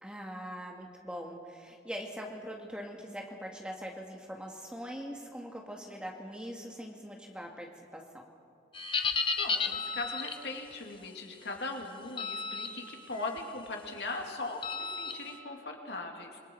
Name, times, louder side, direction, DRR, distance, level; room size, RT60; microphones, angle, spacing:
voice 1, 0.0-8.2, equal, 5° right, 1 dB, 1.8 m, -42 dB
sound 1, 8.7-10.4 12.2-12.7 13.1-13.4 14.6-15.1, left 4 dB, 30° left, 0.9 m, -32 dB
voice 2, 9.4-16.4, left 3 dB, 80° left, 2 dB, 2.5 m, -39 dB
28.0 x 21.5 x 4.6 m, 2.4 s
head